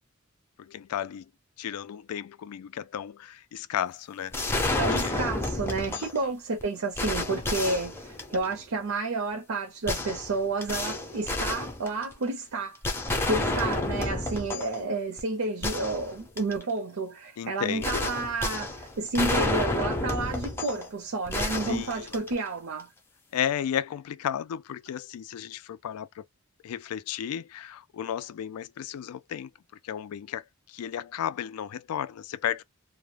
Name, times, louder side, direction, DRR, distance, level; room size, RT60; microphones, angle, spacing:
voice 1, 0.6-1.3 1.6-4.3 4.6-5.2 5.9-6.1 17.4-18.1 21.6-22.0 23.3-26.2 26.6-29.5 29.8-32.6, left 9 dB, 90° left, 0.3 m, -34 dB
sound 1, 4.3-6.2 6.6-6.7 7.0-8.6 9.9-12.3 12.8-14.8 15.2-15.3 15.6-16.6 17.8-20.9 21.3-22.6, left 2 dB, 10° left, 0.5 m, -30 dB
voice 2, 4.8-22.9, right 3 dB, 75° right, 0.6 m, -31 dB
2.3 x 2.1 x 3.1 m
head